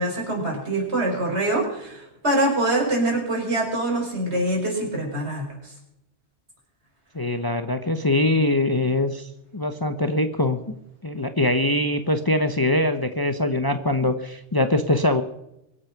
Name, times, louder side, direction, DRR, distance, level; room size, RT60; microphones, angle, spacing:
voice 1, 0.0-5.7, right 1 dB, 85° right, 0 dB, 5.5 m, -24 dB
voice 2, 7.1-10.7 11.0-15.2, left 1 dB, 20° left, 8 dB, 0.8 m, -23 dB
23.5 x 8.3 x 5.9 m, 0.84 s
omnidirectional pair, 1.1 m